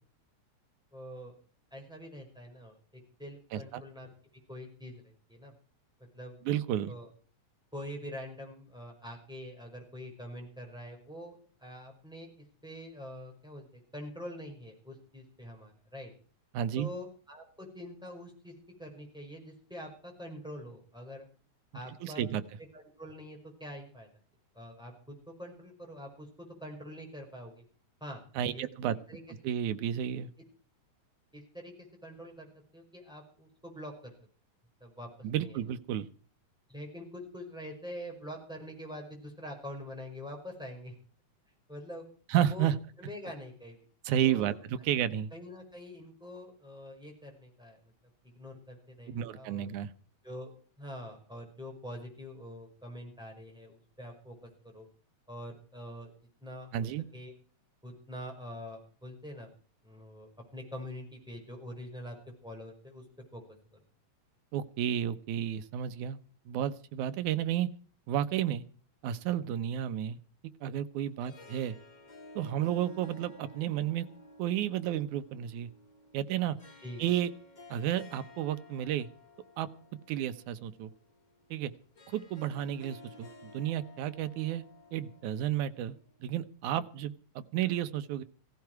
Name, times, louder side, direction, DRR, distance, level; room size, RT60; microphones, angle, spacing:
voice 1, 0.9-1.3 1.7-2.8 3.2-4.1 4.5-5.5 6.1-6.3 6.9-7.1 7.7-16.1 16.7-18.5 18.8-21.3 21.7-22.2 22.7-24.1 24.5-27.6 28.0-29.5 31.3-31.7 32.0-34.1 34.8-35.6 36.7-40.9 41.7-42.0 42.5-42.7 43.0-43.8 44.2-44.5 44.8-45.0 45.3-47.8 48.2-49.7 50.2-50.5 50.8-54.9 55.3-56.1 56.4-56.9 57.1-57.3 57.8-59.5 59.8-62.2 62.4-63.0 63.3-63.4 76.8-77.0, equal, ahead, 0 dB, 5.1 m, -45 dB
voice 2, 3.5-3.8 6.5-6.9 16.5-16.9 22.0-22.4 28.4-29.0 29.4-30.3 35.2-36.1 42.3-42.8 44.1-45.3 49.1-49.9 56.7-57.1 64.5-66.2 66.5-67.7 68.1-68.6 69.0-70.2 70.6-71.8 72.4-74.1 74.4-75.7 76.1-76.6 77.0-77.3 77.7-79.1 79.6-79.7 80.1-80.9 81.5-81.7 82.1-84.6 84.9-86.0 86.2-88.2, right 11 dB, 90° right, 11 dB, 2.3 m, -32 dB
Harp, 70.9-86.2, left 2 dB, 25° left, 1.0 m, -54 dB
16.5 x 15.5 x 4.7 m, 0.42 s
omnidirectional pair, 3.3 m